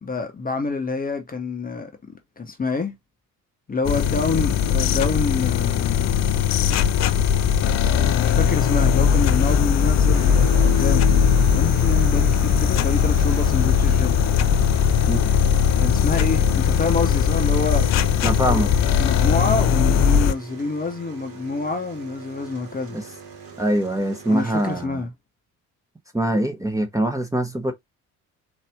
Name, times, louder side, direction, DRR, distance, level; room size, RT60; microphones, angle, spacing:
voice 1, 0.0-2.9 3.7-6.2 7.8-14.2 15.8-17.9 18.4-18.7 19.0-23.0 24.3-25.1, left 3 dB, 20° left, 0.9 m, -27 dB
sound 1, 3.8-20.3, left 7 dB, 40° left, 0.5 m, -19 dB
sound 2, 10.1-24.9, right 6 dB, 75° right, 1.1 m, -40 dB
voice 2, 18.2-18.7 22.9-23.0 23.6-25.0 26.1-27.7, right 1 dB, 5° right, 0.9 m, -23 dB
4.0 x 2.5 x 3.4 m
figure-of-eight pair, 50°, 44 cm